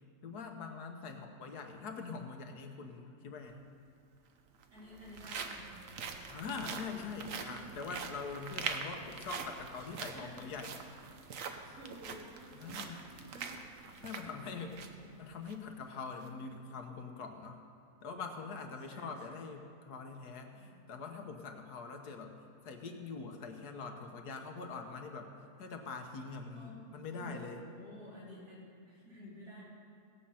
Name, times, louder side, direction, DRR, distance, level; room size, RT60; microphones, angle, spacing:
voice 1, 0.2-3.6 6.3-10.8 12.5-13.0 14.0-14.8 15.2-17.6 18.0-22.3 22.6-25.3 25.6-27.6, left 4 dB, 80° left, 4 dB, 1.6 m, -43 dB
voice 2, 1.0-1.4 4.7-6.5 6.9-7.7 10.0-10.6 11.2-11.3 11.6-14.0 14.3-15.2 18.9-19.4 20.5-20.8 26.5-26.7 27.1-29.6, equal, 85° right, -8 dB, 4.7 m, -53 dB
sound 1, 3.4-3.5 4.5-15.0 15.4-15.5 16.1-16.3, right 5 dB, 60° right, 1.2 m, -44 dB
sound 2, 4.7-10.0, right 2 dB, 35° right, 2.1 m, -61 dB
17.0 x 7.6 x 5.7 m, 2.5 s
omnidirectional pair, 1.7 m